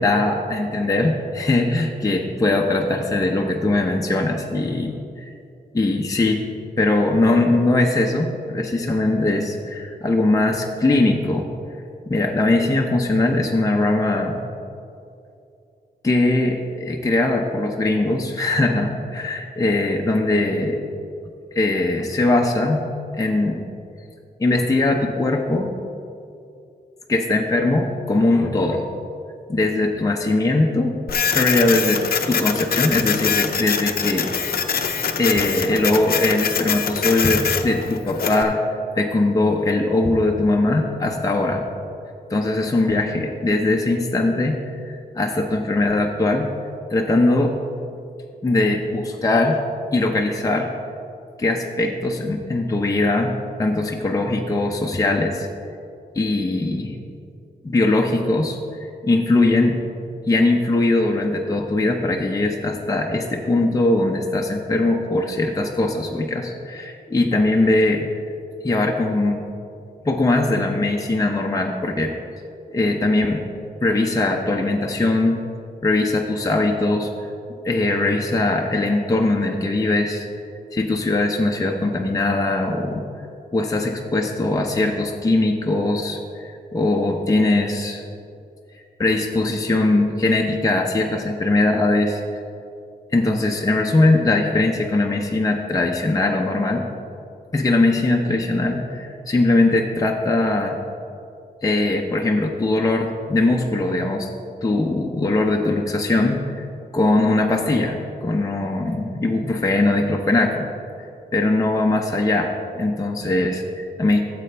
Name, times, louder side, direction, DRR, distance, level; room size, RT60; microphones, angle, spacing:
voice 1, 0.0-5.3 5.7-6.4 6.8-11.5 12.1-14.4 16.0-20.8 21.5-23.6 24.4-25.7 27.1-28.9 29.5-31.0 31.3-34.3 35.2-38.6 39.0-41.7 42.3-46.5 46.9-47.6 48.4-49.6 49.9-50.7 51.4-55.5 56.1-57.0 57.6-59.8 60.3-68.1 68.6-69.4 70.0-72.1 72.7-73.4 73.8-75.4 75.8-77.3 77.6-80.3 80.7-83.0 83.5-88.0 89.0-92.4 93.1-96.9 97.5-100.8 101.6-104.3 104.6-106.6 106.9-110.7 111.3-114.2, left 2 dB, 20° left, 1 dB, 0.6 m, -21 dB
Printer, 31.1-38.4, left 6 dB, 65° left, 0.6 m, -24 dB
13.5 x 7.6 x 3.4 m, 2.5 s
wide cardioid pair, 120°, 17 cm